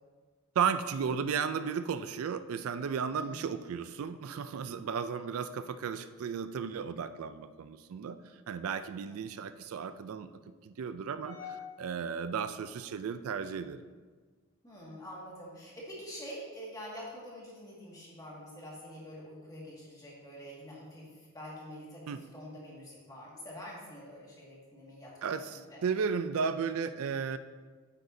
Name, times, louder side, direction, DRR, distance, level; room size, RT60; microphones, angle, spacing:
voice 1, 0.6-10.3 10.6-11.4 11.8-13.8 22.1-22.2 25.2-27.4, right 6 dB, 75° right, 12 dB, 0.4 m, -34 dB
voice 2, 3.0-3.5 11.2-11.9 14.6-21.0 21.3-25.1 25.4-25.8, left 1 dB, 15° left, -5 dB, 1.9 m, -46 dB
9.1 x 8.0 x 2.7 m, 1.4 s
head